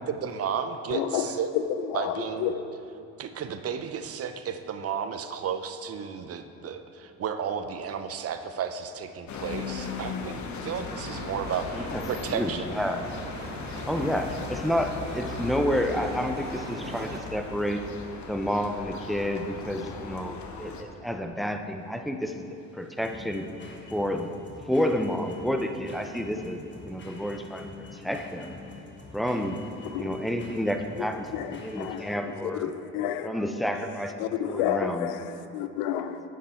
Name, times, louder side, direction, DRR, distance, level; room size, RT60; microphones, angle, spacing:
voice 1, 0.1-1.5 1.9-2.5 3.2-10.4 10.6-12.7, right 7 dB, 45° right, 9 dB, 0.6 m, -33 dB
voice 2, 0.9-2.6 29.9-30.1 31.3-32.1 32.6-33.3 34.2-35.2 35.5-36.2, left 9 dB, 85° left, 11 dB, 0.5 m, -30 dB
sound 1, 9.3-20.8, left 5 dB, 60° left, 0.9 m, -38 dB
sound 2, 10.4-17.2, right 2 dB, 30° right, 1.1 m, -41 dB
voice 3, 11.7-13.0 13.9-17.9 18.3-22.5 22.7-23.5 23.9-24.3 24.7-28.5 29.1-29.6 29.9-32.7 33.2-35.1, equal, ahead, 5 dB, 0.5 m, -30 dB
sound 3, 21.1-32.4, left 3 dB, 35° left, 1.4 m, -46 dB
9.0 x 6.5 x 4.3 m, 2.7 s
supercardioid pair, 80°, 33 cm